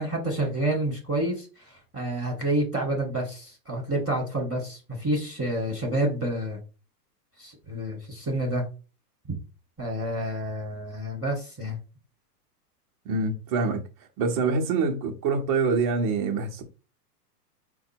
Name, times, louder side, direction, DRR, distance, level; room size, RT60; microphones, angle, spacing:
voice 1, 0.0-6.6 7.4-8.6 9.8-11.8, right 1 dB, ahead, 0.3 m, -29 dB
voice 2, 13.0-13.8 14.2-16.6, right 4 dB, 25° right, 0.7 m, -25 dB
4.7 x 2.2 x 4.4 m
hypercardioid pair, 160°, 47 cm